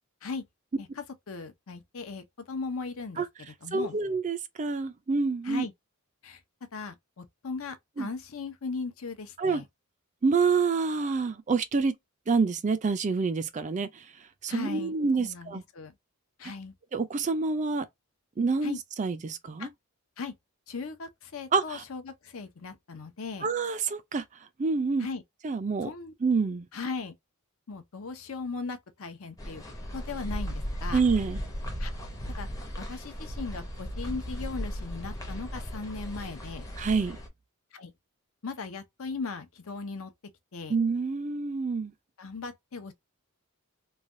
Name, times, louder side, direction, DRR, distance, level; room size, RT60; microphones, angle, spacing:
voice 1, 0.8-4.0 5.4-5.7 6.2-6.4 6.7-9.6 14.5-15.9 16.4-16.7 18.6-18.8 19.6-19.7 20.2-20.3 20.7-23.5 25.0-25.2 25.8-26.1 26.7-27.1 27.7-29.6 29.9-31.0 31.8-31.9 32.4-32.5 32.8-36.7 37.7-37.9 38.4-40.1 40.5-40.8 42.2-42.9, left 4 dB, 65° left, 0.7 m, -38 dB
voice 2, 3.7-5.7 8.0-8.1 9.4-9.6 10.2-11.9 12.3-14.0 14.4-15.6 16.9-17.9 18.4-19.7 21.5-21.8 23.4-24.2 24.6-25.1 25.4-25.9 26.2-26.7 30.9-31.4 36.8-37.2 40.7-41.9, right 4 dB, 35° right, 0.4 m, -27 dB
sound 1, 29.4-37.3, equal, 15° left, 0.6 m, -36 dB
3.1 x 2.3 x 2.5 m
head